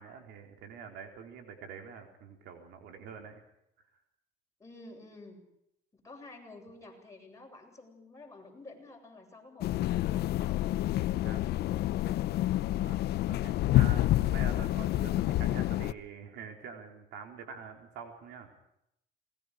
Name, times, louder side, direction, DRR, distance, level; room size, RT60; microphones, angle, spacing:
voice 1, 0.0-3.4 10.8-11.4 12.8-18.5, right 6 dB, 85° right, 4 dB, 4.1 m, -46 dB
voice 2, 4.6-5.4 5.9-10.6, left 2 dB, 20° left, 0 dB, 8.0 m, -51 dB
sound 1, 9.6-15.9, left 14 dB, 70° left, 0.8 m, -28 dB
27.5 x 21.0 x 5.0 m, 0.78 s
cardioid pair, 110°, 17 cm